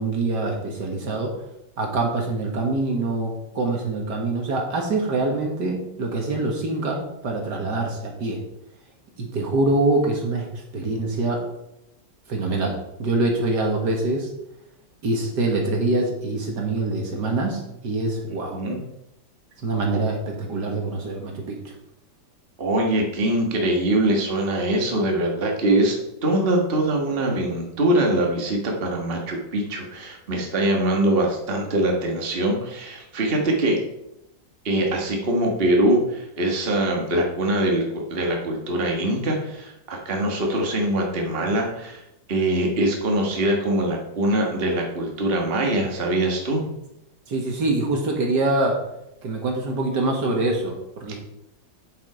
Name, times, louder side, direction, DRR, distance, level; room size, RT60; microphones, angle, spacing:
voice 1, 0.0-1.3 1.8-8.4 9.2-11.4 12.3-14.3 15.0-18.6 19.6-21.7 47.3-48.8 49.2-51.2, right 2 dB, 60° right, 1 dB, 2.1 m, -25 dB
voice 2, 22.6-26.0 26.2-33.8 34.7-42.0 42.3-46.6, right 1 dB, 30° right, 0 dB, 1.7 m, -23 dB
8.5 x 7.4 x 4.9 m, 0.83 s
omnidirectional pair, 2.0 m